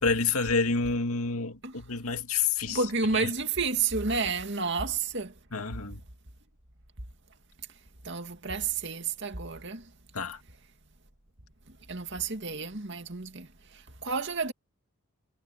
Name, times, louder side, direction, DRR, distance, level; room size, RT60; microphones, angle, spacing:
voice 1, 0.0-2.8 5.5-6.0 10.1-10.4, left 4 dB, 75° left, 2.4 m, -28 dB
voice 2, 2.7-5.3 8.0-9.9 11.9-14.5, right 4 dB, 50° right, 2.4 m, -31 dB
head